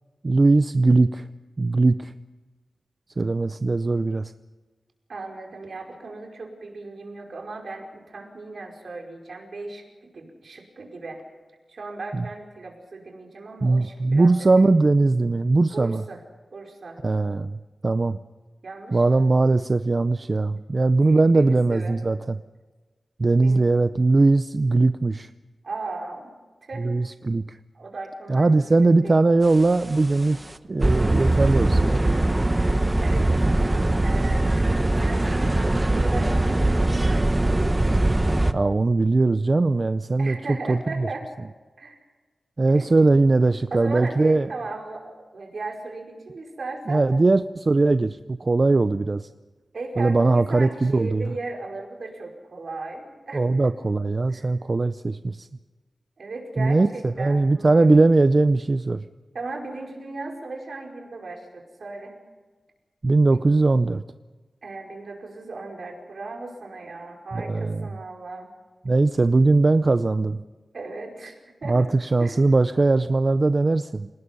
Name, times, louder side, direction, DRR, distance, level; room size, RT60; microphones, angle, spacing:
voice 1, 0.2-1.3 1.6-2.1 3.2-4.3 12.1-12.3 13.6-16.0 17.0-18.2 18.9-22.4 23.2-25.3 26.8-27.6 28.3-30.4 30.7-31.9 38.5-40.4 40.7-41.1 42.6-44.5 46.9-49.3 50.0-51.3 53.3-55.5 56.6-59.0 63.0-64.0 67.3-67.9 68.8-70.4 71.6-74.1, right 3 dB, 35° right, 11 dB, 0.6 m, -20 dB
voice 2, 5.1-11.2 11.7-14.7 15.7-16.2 16.5-17.0 18.6-19.2 21.2-22.0 23.4-23.6 25.6-26.3 26.6-26.9 27.8-29.2 33.0-34.5 35.0-37.5 40.2-41.3 41.8-42.0 42.7-42.9 43.7-47.1 49.7-53.7 54.3-54.5 56.2-57.9 59.3-62.2 63.3-63.4 64.6-68.5 70.7-71.9 72.2-72.4, right 3 dB, 65° right, 1 dB, 5.2 m, -37 dB
sound 1, 29.6-29.9 30.3-30.4 30.8-38.5, right 2 dB, 20° right, 1.0 m, -21 dB
28.5 x 19.5 x 5.4 m, 1.3 s
wide cardioid pair, 125°, 0 cm